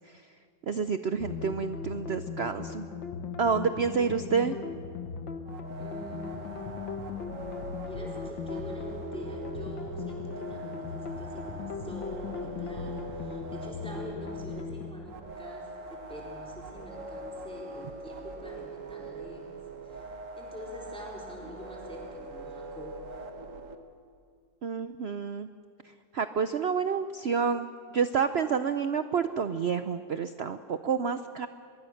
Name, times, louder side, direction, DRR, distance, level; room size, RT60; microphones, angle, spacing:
voice 1, 0.7-2.9 3.4-4.6 24.6-25.5 26.1-31.5, right 6 dB, 85° right, 10 dB, 0.5 m, -29 dB
sound 1, 1.2-14.9, left 5 dB, 80° left, 2.1 m, -38 dB
sound 2, 5.5-23.8, right 2 dB, 45° right, 1.7 m, -43 dB
voice 2, 5.8-6.7 7.8-19.6 19.8-23.0, equal, 5° left, -3 dB, 3.8 m, -45 dB
25.0 x 22.5 x 6.5 m, 2.3 s
omnidirectional pair, 2.0 m